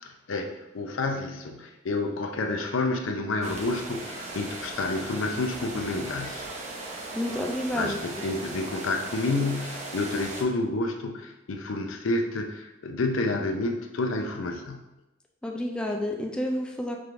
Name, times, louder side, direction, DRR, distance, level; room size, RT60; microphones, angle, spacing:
voice 1, 0.0-0.5 0.7-6.5 7.7-14.8, left 2 dB, 85° left, 4 dB, 0.5 m, -29 dB
sound 1, 3.4-10.4, right 2 dB, 35° right, 0.7 m, -38 dB
voice 2, 7.1-8.0 8.3-8.4 15.4-17.0, left 1 dB, 5° left, 1 dB, 0.3 m, -30 dB
4.8 x 3.5 x 2.5 m, 0.93 s
head